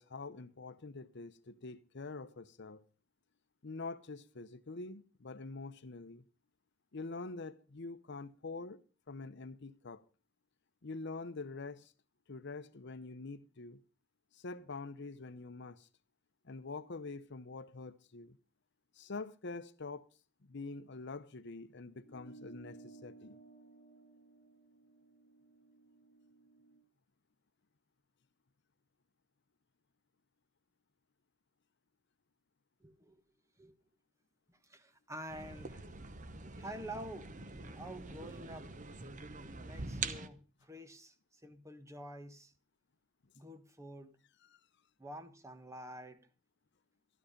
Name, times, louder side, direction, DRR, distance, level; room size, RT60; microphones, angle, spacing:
voice 1, 0.0-2.8 3.6-6.2 6.9-8.8 9.1-10.0 10.8-11.9 12.3-13.8 14.3-15.9 16.4-18.4 18.9-20.1 20.4-23.4 44.5-44.6, left 3 dB, 60° left, 0.8 m, -45 dB
sound 1, 22.0-26.8, right 3 dB, 40° left, 1.5 m, -57 dB
voice 2, 32.8-33.2 33.6-33.8 34.5-35.8 36.6-37.3 37.7-38.7 39.6-42.5 43.3-44.2 45.0-46.3, right 1 dB, 15° right, 1.2 m, -48 dB
sound 2, 35.3-40.3, right 4 dB, 40° right, 1.0 m, -44 dB
13.0 x 12.5 x 5.2 m
head